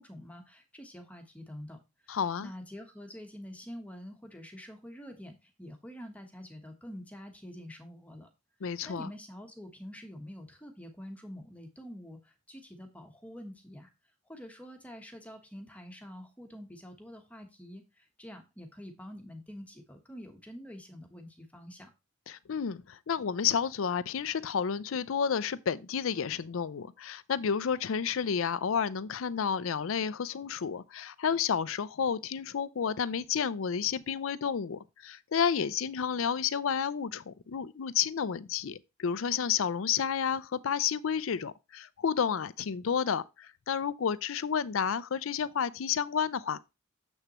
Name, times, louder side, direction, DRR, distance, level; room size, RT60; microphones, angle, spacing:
voice 1, 0.0-8.3 8.6-13.9 14.2-21.9, equal, 5° left, 1.1 m, -47 dB
voice 2, 2.1-2.5 8.6-9.1 22.3-46.6, left 7 dB, 70° left, 0.5 m, -31 dB
7.2 x 6.6 x 3.0 m
head